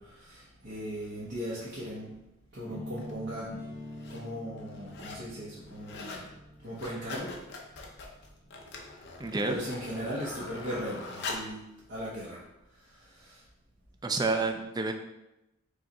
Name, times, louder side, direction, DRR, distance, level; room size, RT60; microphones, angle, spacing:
voice 1, 0.0-2.2 2.5-3.5 4.1-6.3 6.6-7.3 9.5-11.6 11.9-12.4 12.7-13.4, equal, 50° right, -8 dB, 0.9 m, -38 dB
sound 1, 2.6-8.6, left 1 dB, 15° left, 0.8 m, -46 dB
sound 2, 3.0-3.1 3.8-4.2 4.6-5.3 5.6-6.3 6.6-11.6 12.2-12.3, left 3 dB, 50° left, 0.6 m, -42 dB
voice 2, 9.2-9.6 14.0-14.9, right 3 dB, 20° right, 5 dB, 0.3 m, -29 dB
5.0 x 2.4 x 4.1 m, 0.91 s
head